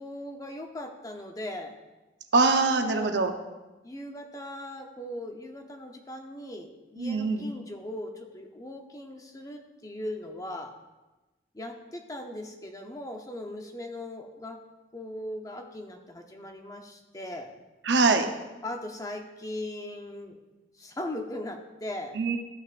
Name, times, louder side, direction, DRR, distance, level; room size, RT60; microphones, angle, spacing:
voice 1, 0.0-1.8 2.8-3.1 3.8-10.7 11.5-14.6 14.9-17.5 18.6-20.4 20.8-22.2, left 1 dB, 20° left, 4 dB, 0.7 m, -39 dB
voice 2, 2.3-3.3 7.0-7.4 17.8-18.3 22.1-22.4, right 3 dB, 80° right, 5 dB, 0.8 m, -23 dB
13.5 x 6.0 x 2.5 m, 1.1 s
head